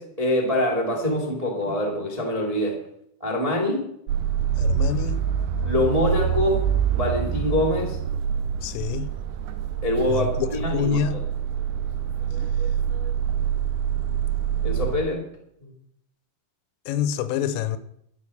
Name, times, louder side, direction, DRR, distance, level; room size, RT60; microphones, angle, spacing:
voice 1, 0.0-2.8 3.2-3.9 5.6-6.6 6.9-8.0 9.8-11.2 14.6-15.2 15.6-15.7, left 1 dB, 20° right, 1.0 m, -25 dB
sound 1, 4.1-15.0, right 8 dB, 80° right, 3.5 m, -26 dB
voice 2, 4.6-5.2 8.6-9.1 10.1-11.2 16.9-17.8, left 9 dB, 85° left, 3.4 m, -26 dB
13.0 x 9.2 x 6.5 m
omnidirectional pair, 5.9 m